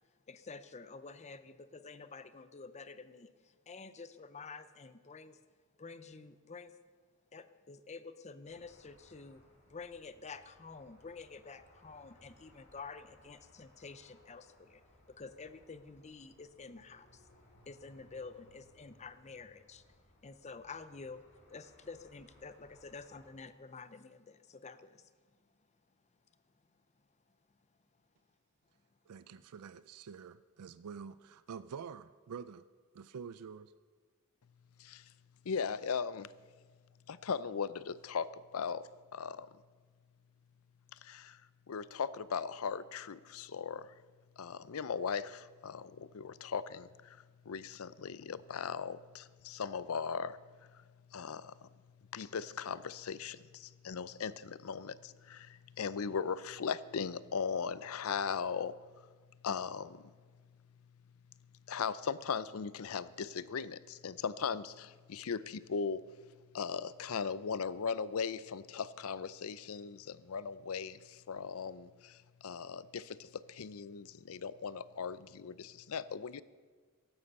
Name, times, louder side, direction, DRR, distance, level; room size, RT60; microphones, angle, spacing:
voice 1, 0.3-5.4 5.8-6.7 7.3-9.4 9.7-14.8 15.1-17.3 17.6-19.9 20.2-21.2 21.5-25.1, left 4 dB, 30° left, 0.6 m, -49 dB
sound 1, 8.4-23.3, left 1 dB, 50° left, 4.0 m, -65 dB
voice 2, 29.1-32.7 32.9-33.7, right 6 dB, 90° right, 0.4 m, -47 dB
voice 3, 34.8-35.1 35.4-36.3 37.1-39.6 40.9-41.4 41.7-43.9 44.4-51.7 52.1-59.1 59.4-60.4 61.7-66.3 66.5-76.4, left 6 dB, 70° left, 0.5 m, -38 dB
15.0 x 11.5 x 5.4 m
head